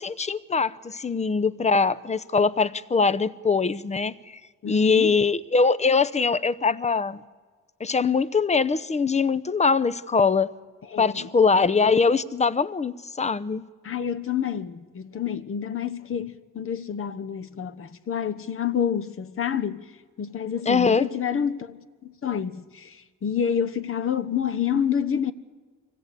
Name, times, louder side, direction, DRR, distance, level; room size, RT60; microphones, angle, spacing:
voice 1, 0.0-4.4 4.7-7.2 7.8-10.5 11.0-13.7 20.7-21.1, left 4 dB, 20° left, 0.8 m, -22 dB
voice 2, 4.6-5.1 10.9-11.3 13.8-19.8 20.2-23.0 23.2-25.3, left 8 dB, 45° left, 1.2 m, -28 dB
25.0 x 17.5 x 8.4 m
cardioid pair, 90°, 30 cm